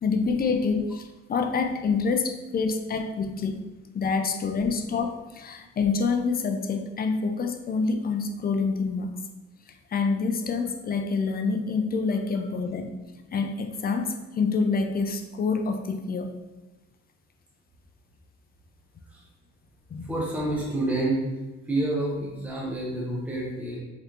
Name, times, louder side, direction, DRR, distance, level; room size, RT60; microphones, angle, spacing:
voice 1, 0.0-3.6 3.9-9.1 9.9-12.9 13.3-16.3 19.9-20.1, left 4 dB, 30° left, 6 dB, 0.4 m, -27 dB
voice 2, 20.0-21.3 21.7-23.8, right 2 dB, 5° right, -4 dB, 0.8 m, -28 dB
3.8 x 3.2 x 2.9 m, 1.1 s
cardioid pair, 90°, 30 cm